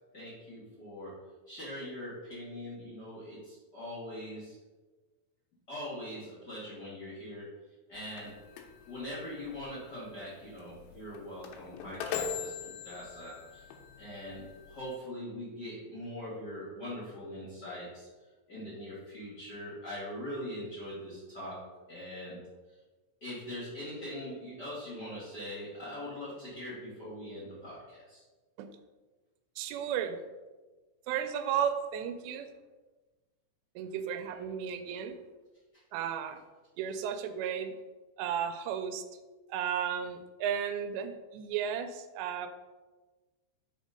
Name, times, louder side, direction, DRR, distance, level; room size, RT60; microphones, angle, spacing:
voice 1, 0.1-1.1 1.5-4.6 5.7-7.5 7.9-8.3 8.9-13.7 14.0-18.1 18.5-21.6 21.9-22.4 22.7-22.8 23.2-28.2 34.3-34.4 35.7-35.8, left 1 dB, 35° left, -8 dB, 2.0 m, -42 dB
sound 1, 7.9-15.0, left 7 dB, 85° left, 2.8 m, -42 dB
voice 2, 29.6-30.2 31.1-32.5 33.8-35.2 35.9-36.4 36.8-37.7 38.2-39.0 39.5-42.5, right 8 dB, 85° right, 9 dB, 2.7 m, -34 dB
5.2 x 5.0 x 5.1 m, 1.2 s
omnidirectional pair, 4.9 m